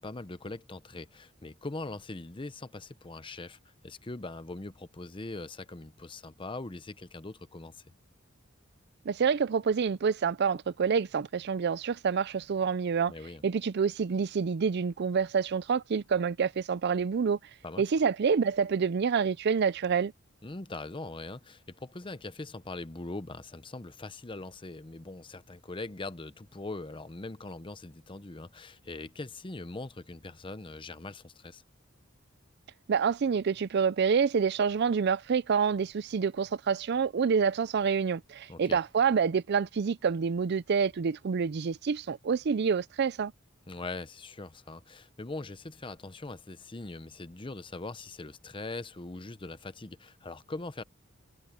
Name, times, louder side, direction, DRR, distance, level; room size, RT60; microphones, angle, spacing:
voice 1, 0.0-7.8 13.1-13.4 17.6-17.8 20.4-31.6 38.5-38.8 43.7-50.8, left 2 dB, 25° left, 0.8 m, -41 dB
voice 2, 9.1-13.1 13.4-17.4 17.8-20.1 32.9-43.3, right 6 dB, 55° right, 0.4 m, -27 dB
head